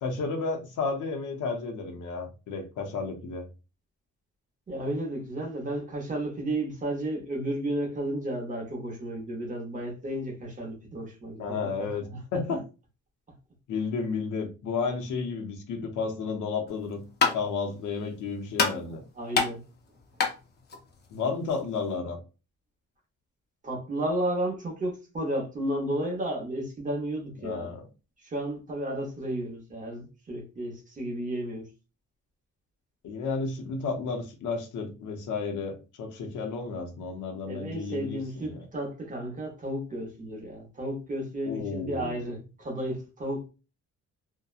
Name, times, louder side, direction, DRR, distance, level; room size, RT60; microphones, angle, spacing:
voice 1, 0.0-3.5 11.4-12.0 12.3-12.6 13.7-17.1 17.3-19.0 21.1-22.2 27.4-27.8 33.0-38.6 41.5-42.2, left 4 dB, 80° left, 0.7 m, -32 dB
voice 2, 4.7-12.2 12.5-12.6 19.2-19.6 23.6-27.7 28.2-31.7 37.4-43.5, right 1 dB, 25° right, 0.8 m, -33 dB
sound 1, 16.7-22.0, left 5 dB, 35° left, 0.5 m, -30 dB
2.8 x 2.1 x 2.3 m
cardioid pair, 165°, 30 cm